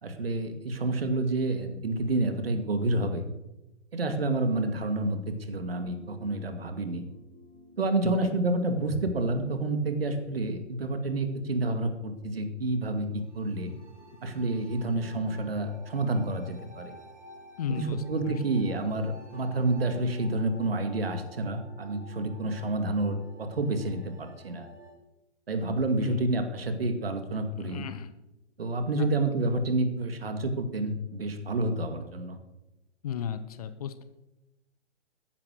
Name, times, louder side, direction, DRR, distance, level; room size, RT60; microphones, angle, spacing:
voice 1, 0.0-3.3 3.9-7.0 7.8-13.7 14.2-17.0 17.7-24.7 25.5-27.8 28.6-32.4, right 2 dB, 55° right, 7 dB, 2.3 m, -29 dB
sound 1, 5.6-25.0, equal, 90° right, 3.4 m, -52 dB
voice 2, 17.6-18.3 26.0-26.2 27.5-28.1 29.0-29.1 33.0-34.0, left 8 dB, 35° left, 11 dB, 0.9 m, -35 dB
14.0 x 10.5 x 6.3 m, 0.96 s
figure-of-eight pair, 125°, 35 cm